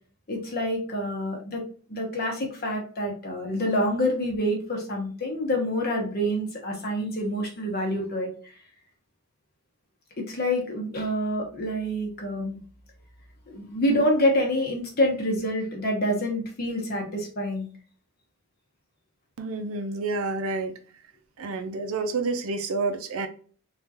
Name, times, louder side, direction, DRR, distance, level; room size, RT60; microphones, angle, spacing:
voice 1, 0.3-1.6 1.9-8.3 10.2-12.6 13.5-17.7, equal, 45° left, 1.0 m, -27 dB
voice 2, 19.4-20.7 21.4-23.3, right 3 dB, 80° right, 0.5 m, -29 dB
3.6 x 2.4 x 2.8 m
head